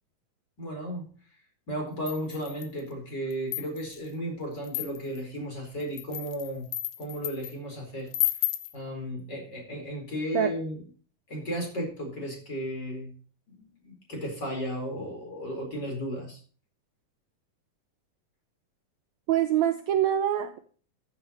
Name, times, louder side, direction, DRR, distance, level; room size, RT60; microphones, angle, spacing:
voice 1, 0.6-1.1 1.7-6.7 7.0-8.1 8.7-10.8 11.3-13.1 13.5-16.4, equal, 30° left, 1 dB, 5.0 m, -34 dB
sound 1, 2.1-2.8 3.3-4.0 4.6-5.2 5.8-7.5 8.1-8.7, left 15 dB, 80° left, 2.5 m, -32 dB
voice 2, 19.3-20.6, right 11 dB, 85° right, 9 dB, 1.5 m, -25 dB
14.5 x 9.0 x 3.1 m, 0.42 s
omnidirectional pair, 4.1 m